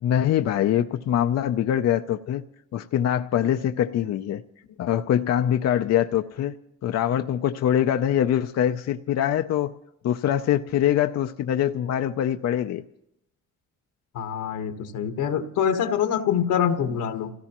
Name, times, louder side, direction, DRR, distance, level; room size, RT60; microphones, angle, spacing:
voice 1, 0.0-2.4 2.7-4.4 4.8-6.6 6.8-9.8 10.0-12.8, left 10 dB, 60° left, 7 dB, 0.5 m, -23 dB
voice 2, 14.1-17.3, left 8 dB, 85° left, 7 dB, 1.4 m, -25 dB
28.5 x 16.5 x 3.0 m, 0.81 s
cardioid pair, 90°, 30 cm